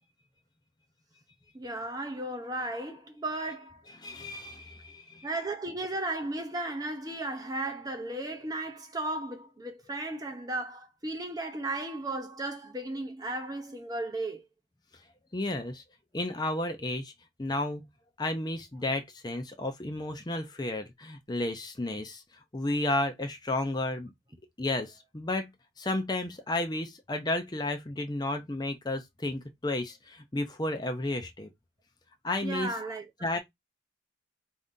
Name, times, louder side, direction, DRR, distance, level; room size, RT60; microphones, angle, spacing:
voice 1, 1.5-3.8 5.2-14.4 32.4-33.1, right 2 dB, 20° right, 0.6 m, -35 dB
voice 2, 4.0-5.3 15.3-15.8 16.1-17.1 17.4-17.9 18.2-22.2 22.5-24.1 24.6-25.5 25.8-31.5 32.2-32.7 33.2-33.4, left 2 dB, 20° left, 0.6 m, -32 dB
4.6 x 2.6 x 3.6 m
head